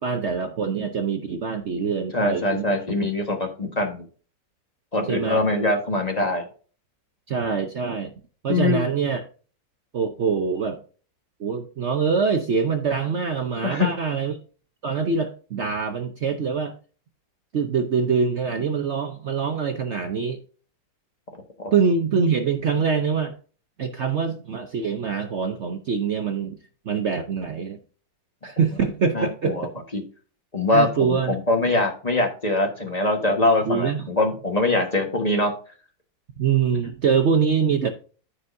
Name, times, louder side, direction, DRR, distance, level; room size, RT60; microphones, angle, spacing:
voice 1, 0.0-2.7 5.1-5.4 7.3-8.1 8.4-9.2 9.9-10.8 11.4-14.4 14.8-16.7 17.5-20.4 21.7-23.3 23.8-26.6 26.9-27.8 28.4-29.7 30.7-31.4 33.6-34.1 36.4-37.9, right 6 dB, 60° right, 6 dB, 0.7 m, -24 dB
voice 2, 2.1-4.0 4.9-6.5 8.5-8.8 13.6-13.9 21.6-21.8 29.1-29.7 29.9-30.0 30.5-35.5, left 2 dB, 25° left, 4 dB, 1.3 m, -23 dB
14.0 x 5.1 x 2.6 m, 0.39 s
omnidirectional pair, 2.0 m